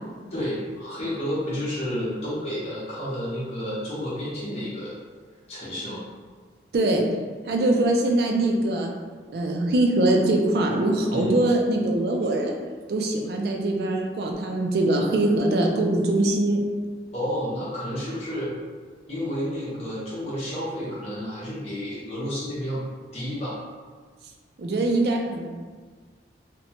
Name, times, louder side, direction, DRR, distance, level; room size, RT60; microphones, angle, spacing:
voice 1, 0.3-5.0 5.5-6.0 11.1-11.4 17.1-18.5 19.1-22.8 23.1-23.6, equal, 35° left, -10 dB, 0.8 m, -30 dB
voice 2, 6.7-7.0 7.5-8.9 9.3-12.5 12.9-16.6 24.6-25.5, right 2 dB, 60° right, 1 dB, 0.4 m, -22 dB
2.8 x 2.1 x 2.8 m, 1.5 s
head